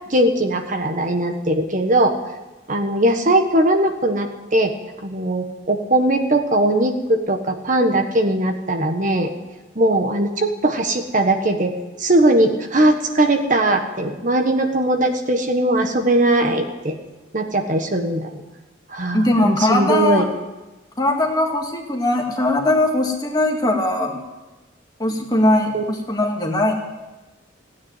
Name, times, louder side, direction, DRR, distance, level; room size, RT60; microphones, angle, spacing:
voice 1, 0.1-2.1 2.7-4.7 5.0-9.3 9.7-11.7 12.0-16.9 17.3-18.4 18.9-20.2 25.7-25.8, right 1 dB, 40° right, 5 dB, 1.4 m, -19 dB
voice 2, 19.1-20.3 21.0-24.2 25.0-26.7, left 1 dB, 20° left, 1 dB, 2.0 m, -20 dB
16.0 x 9.5 x 9.1 m, 1.1 s
head